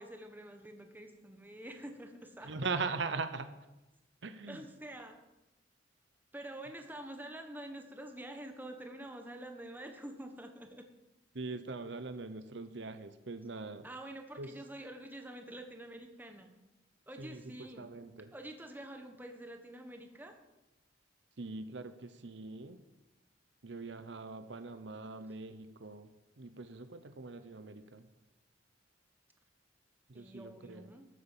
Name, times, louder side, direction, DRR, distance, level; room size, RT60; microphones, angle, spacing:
voice 1, 0.0-2.7 4.5-5.2 6.3-10.8 13.8-16.5 17.1-17.9 18.3-20.4 30.1-31.1, right 1 dB, 10° right, 5 dB, 1.3 m, -47 dB
voice 2, 2.4-3.5 4.2-4.6 11.3-13.9 14.4-14.5 17.2-18.3 21.4-22.8 23.6-26.1 26.4-28.1 30.1-30.9, right 4 dB, 65° right, 10 dB, 0.8 m, -41 dB
13.5 x 8.2 x 7.3 m, 1.0 s
head